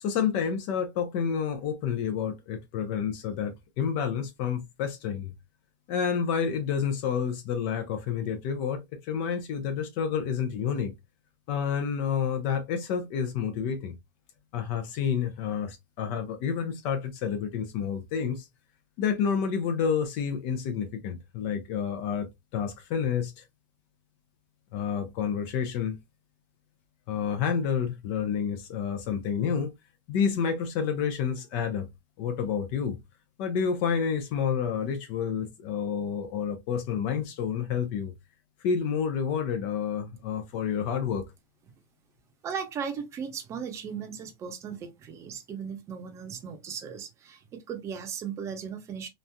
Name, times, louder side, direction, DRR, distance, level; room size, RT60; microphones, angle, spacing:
voice 1, 0.0-5.3 5.9-10.9 11.5-13.9 14.5-18.5 19.0-22.3 22.5-23.4 24.7-26.0 27.1-29.7 30.1-31.9 32.2-33.0 33.4-38.1 38.6-41.2, left 7 dB, 50° left, 0.7 m, -29 dB
voice 2, 42.4-49.1, right 7 dB, 25° right, 0.8 m, -37 dB
3.1 x 2.6 x 2.2 m
supercardioid pair, 135°, 11 cm